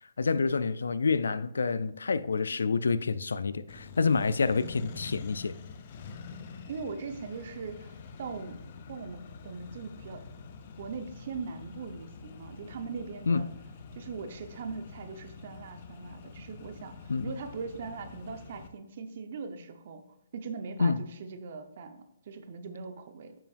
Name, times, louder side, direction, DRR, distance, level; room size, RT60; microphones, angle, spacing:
voice 1, 0.2-5.5 13.3-13.5 17.1-17.4 20.8-21.0, left 4 dB, 80° left, 0.3 m, -28 dB
Accelerating revving vroom, 3.7-18.7, left 5 dB, 45° left, 0.7 m, -46 dB
voice 2, 6.3-8.6 8.9-10.2 10.8-13.5 13.9-20.0 20.3-23.4, right 5 dB, 55° right, 0.9 m, -40 dB
9.0 x 5.7 x 2.5 m
hypercardioid pair, 145°, 0 cm